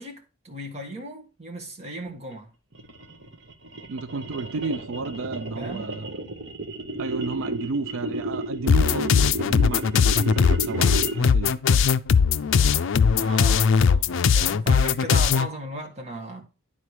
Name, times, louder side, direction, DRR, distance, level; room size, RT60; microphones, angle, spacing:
voice 1, 0.0-2.5 5.6-5.9 13.1-16.4, right 1 dB, 35° right, 1.6 m, -36 dB
sound 1, 2.7-11.4, right 2 dB, 60° right, 1.0 m, -33 dB
voice 2, 3.9-6.1 7.0-9.1 9.4-11.5, right 3 dB, 85° right, 0.5 m, -32 dB
sound 2, 8.7-15.5, left 6 dB, 75° left, 0.4 m, -20 dB
9.9 x 4.1 x 4.8 m
head